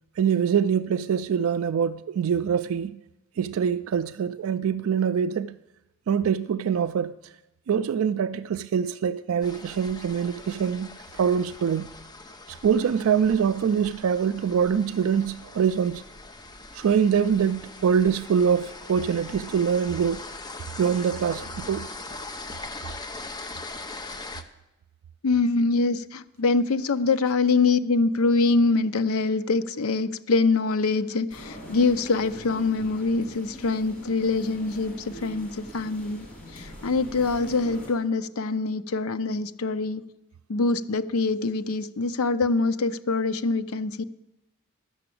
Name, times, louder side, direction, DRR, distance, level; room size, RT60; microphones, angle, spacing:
voice 1, 0.2-3.0 3.4-5.6 6.1-7.3 7.7-11.9 12.5-16.0 16.7-20.3 20.8-21.9, right 7 dB, 70° right, 0.3 m, -24 dB
sound 1, 9.4-24.4, left 3 dB, 20° left, 0.6 m, -41 dB
voice 2, 25.2-36.3 36.5-40.0 40.5-44.0, left 3 dB, 80° left, 0.6 m, -24 dB
sound 2, 31.3-37.9, equal, 45° left, 3.0 m, -42 dB
11.5 x 6.8 x 8.4 m
head